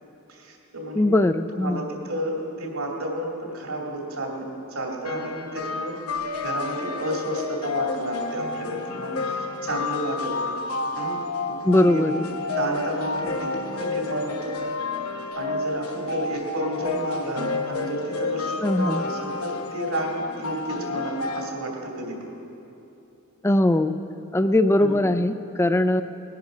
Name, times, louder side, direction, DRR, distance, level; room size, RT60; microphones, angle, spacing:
voice 1, 0.3-1.1 1.5-10.6 10.9-11.6 11.8-12.3 12.6-14.6 15.3-22.3 24.8-25.0, right 1 dB, 80° right, -1 dB, 2.7 m, -31 dB
voice 2, 1.0-1.9 11.6-12.2 18.6-19.0 23.4-23.9 24.3-26.0, left 1 dB, 10° left, 11 dB, 0.3 m, -20 dB
sound 1, 5.0-21.5, left 3 dB, 80° left, 0.9 m, -30 dB
19.0 x 10.5 x 5.0 m, 2.8 s
head